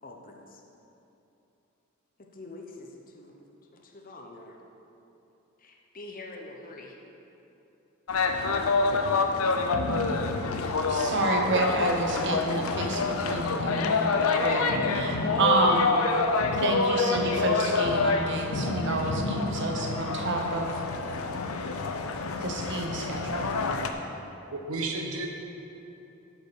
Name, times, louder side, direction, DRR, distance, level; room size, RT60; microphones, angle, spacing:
voice 1, 0.0-0.6 2.2-3.4 3.7-4.6 5.6-7.0, left 2 dB, 40° left, 1 dB, 0.8 m, -45 dB
sound 1, 8.1-23.9, left 4 dB, 85° left, 0.6 m, -27 dB
voice 2, 10.9-16.1 16.6-20.8 22.4-23.6, right 2 dB, 60° right, 2 dB, 1.0 m, -29 dB
voice 3, 24.5-25.3, right 3 dB, 80° right, 1 dB, 1.1 m, -32 dB
8.4 x 5.6 x 6.2 m, 2.9 s
head